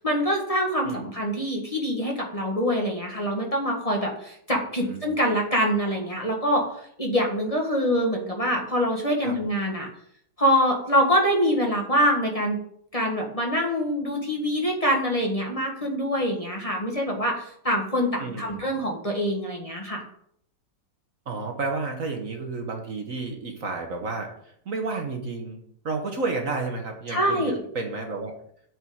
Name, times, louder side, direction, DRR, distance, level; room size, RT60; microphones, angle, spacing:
voice 1, 0.0-9.9 10.4-12.6 12.9-20.1 27.1-27.6, equal, 20° left, 0 dB, 1.7 m, -25 dB
voice 2, 18.2-18.6 21.3-28.3, right 3 dB, 55° right, 3 dB, 1.5 m, -31 dB
8.8 x 5.5 x 6.3 m, 0.67 s
omnidirectional pair, 1.9 m